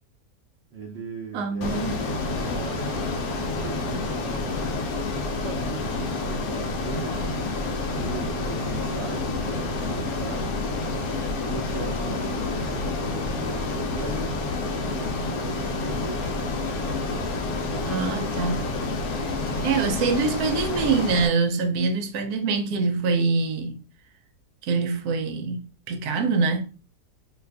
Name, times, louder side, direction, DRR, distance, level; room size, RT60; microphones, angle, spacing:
voice 1, 0.7-4.5 5.2-10.5 11.4-14.4 14.9-16.2, right 4 dB, 90° right, 0.5 m, -39 dB
voice 2, 1.3-2.0 17.9-18.7 19.6-23.8 24.7-26.6, right 4 dB, 70° right, 1.0 m, -24 dB
Ocean, 1.6-21.3, left 3 dB, 70° left, 0.9 m, -28 dB
2.7 x 2.5 x 3.3 m
omnidirectional pair, 1.8 m